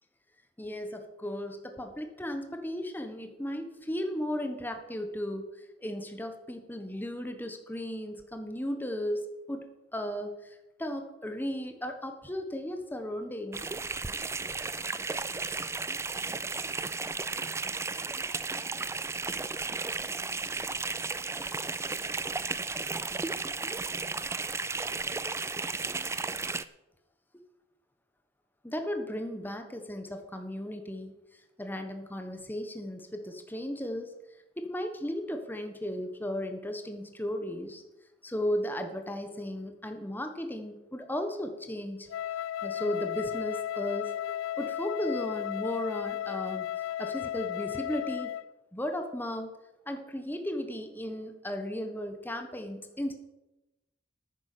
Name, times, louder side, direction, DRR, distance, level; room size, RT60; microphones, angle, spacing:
voice 1, 0.6-5.5 5.8-13.6 28.6-31.1 31.6-34.1 34.6-37.8 38.2-42.1 42.6-44.1 44.6-46.6 47.0-48.3 48.7-49.5 49.9-53.1, left 1 dB, 10° left, 6 dB, 1.3 m, -35 dB
sound 1, 13.5-26.6, right 4 dB, 15° right, 0.4 m, -34 dB
Wind instrument woodwind instrument, 42.1-48.5, left 11 dB, 85° left, 0.3 m, -34 dB
9.8 x 9.5 x 6.8 m, 0.95 s
head